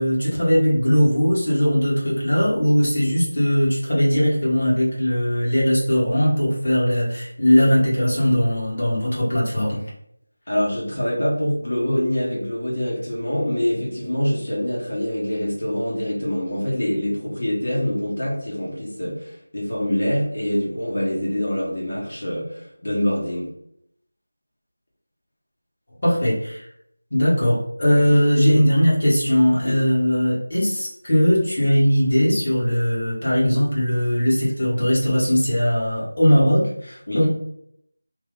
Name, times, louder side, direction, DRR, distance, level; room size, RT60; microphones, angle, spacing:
voice 1, 0.0-9.8 26.0-26.7 27.1-37.3, equal, 45° left, -7 dB, 1.4 m, -19 dB
voice 2, 10.5-23.5 29.6-29.7 37.1-37.2, equal, 65° left, -6 dB, 1.3 m, -25 dB
2.7 x 2.3 x 3.7 m, 0.72 s
figure-of-eight pair, 175°, 0 cm